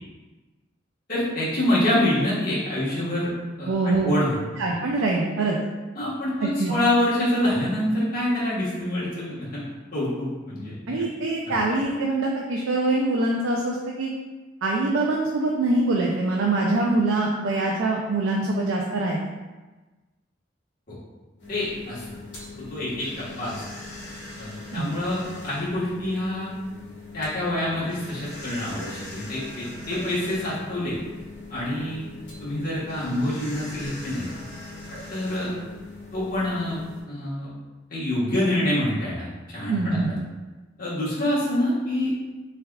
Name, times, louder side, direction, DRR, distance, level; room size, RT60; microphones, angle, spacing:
voice 1, 1.1-3.3 3.6-4.4 5.9-9.6 9.9-10.7 11.4-11.6 20.9-21.0 21.5-22.0 22.6-23.5 24.4-26.5 27.1-31.0 31.5-32.0 32.4-34.3 35.1-35.5 36.1-36.8 37.1-37.5 37.9-39.3 39.5-40.2 40.8-42.1, left 1 dB, 45° left, -9 dB, 1.3 m, -26 dB
voice 2, 3.7-4.1 4.6-5.6 6.4-6.7 10.9-14.1 14.6-19.2 24.7-24.9 39.7-40.1, right 2 dB, 80° right, -1 dB, 0.4 m, -24 dB
sound 1, 21.4-37.0, left 2 dB, 65° left, 1.1 m, -41 dB
3.5 x 3.3 x 2.3 m, 1.2 s
head